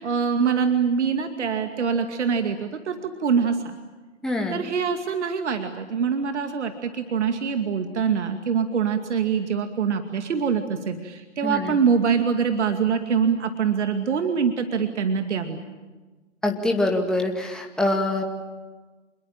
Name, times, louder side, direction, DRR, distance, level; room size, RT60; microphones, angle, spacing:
voice 1, 0.0-3.8 4.5-15.6, right 6 dB, 65° right, 6 dB, 2.4 m, -24 dB
voice 2, 4.2-4.6 11.4-11.8 16.4-18.2, left 2 dB, ahead, 1 dB, 2.3 m, -24 dB
27.5 x 21.5 x 9.0 m, 1.2 s
hypercardioid pair, 140°, 37 cm